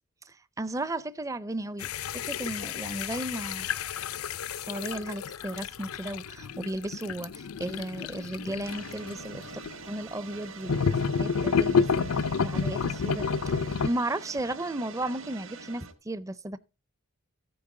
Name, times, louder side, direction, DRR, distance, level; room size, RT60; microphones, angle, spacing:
voice 1, 0.3-1.9 2.1-3.7 4.6-9.5 9.9-16.6, right 1 dB, 15° right, 0.5 m, -35 dB
sound 1, 1.8-9.7 10.7-13.9, left 5 dB, 75° left, 0.5 m, -30 dB
sound 2, 8.6-15.9, right 5 dB, 60° right, 2.0 m, -45 dB
14.5 x 8.6 x 3.7 m
head